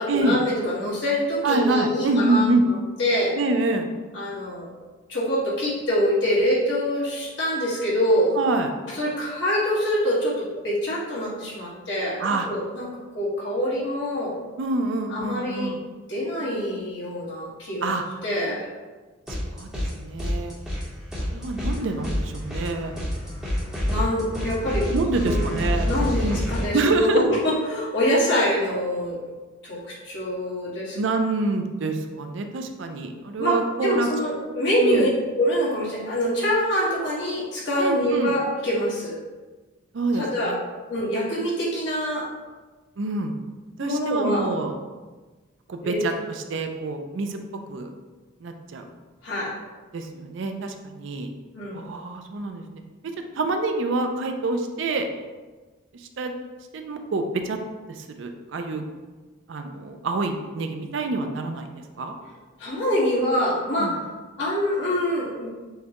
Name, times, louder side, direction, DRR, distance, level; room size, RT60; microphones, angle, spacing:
voice 1, 0.0-2.5 3.0-3.3 4.1-4.7 5.1-8.3 8.9-14.3 15.1-15.7 16.1-17.9 18.2-18.7 23.8-25.5 25.8-29.2 29.6-31.0 33.4-33.6 33.8-39.2 40.1-40.6 40.9-42.3 43.8-44.4 45.8-46.0 49.2-49.5 51.5-51.9 62.6-63.9 64.4-65.5, equal, 60° left, -7 dB, 1.5 m, -25 dB
voice 2, 1.4-2.6 3.4-3.9 8.3-8.7 12.2-12.5 14.6-15.8 17.8-18.0 19.5-20.6 21.3-22.9 24.9-25.9 26.2-26.4 26.7-27.2 30.9-34.1 34.8-35.1 37.8-38.3 39.9-40.6 43.0-43.3 43.8-44.8 45.7-47.4 47.7-47.9 48.4-48.9 49.9-51.3 51.7-52.6 53.0-55.1 55.9-56.3 56.7-57.6 57.9-58.8 59.5-61.7 62.0-62.1 63.8-64.0, right 2 dB, 65° right, 5 dB, 0.4 m, -26 dB
sound 1, 19.3-19.9 20.2-26.7, left 1 dB, 5° right, 0.9 m, -28 dB
6.5 x 2.2 x 2.9 m, 1.3 s
head